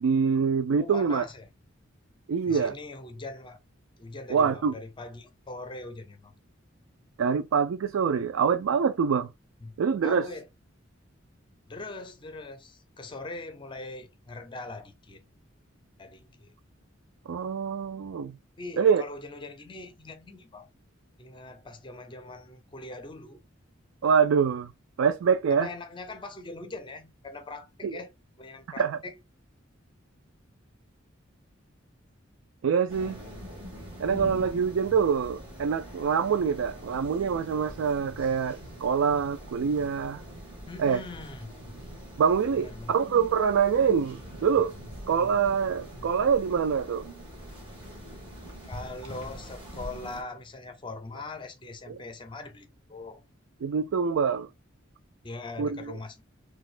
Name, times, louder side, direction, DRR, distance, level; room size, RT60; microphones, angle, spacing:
voice 1, 0.0-1.2 2.3-2.7 4.3-4.7 7.2-9.3 9.8-10.3 17.3-18.4 18.8-19.0 24.0-24.7 25.0-25.7 27.8-28.0 28.8-29.0 32.6-33.2 34.0-40.2 40.8-41.0 42.2-44.7 45.1-47.1 51.9-52.0 53.6-54.5 55.6-55.9, right 6 dB, 85° right, 0.4 m, -25 dB
voice 2, 0.8-1.5 2.5-3.6 4.0-6.3 9.6-9.8 10.0-10.5 11.7-15.2 16.0-16.5 18.6-20.7 21.2-23.4 25.5-28.1 28.4-29.1 40.7-41.5 42.5-42.9 48.7-53.2 55.2-56.2, left 2 dB, 25° left, 0.6 m, -41 dB
sound 1, 32.9-50.2, equal, 30° right, 1.4 m, -43 dB
4.2 x 2.3 x 2.4 m
head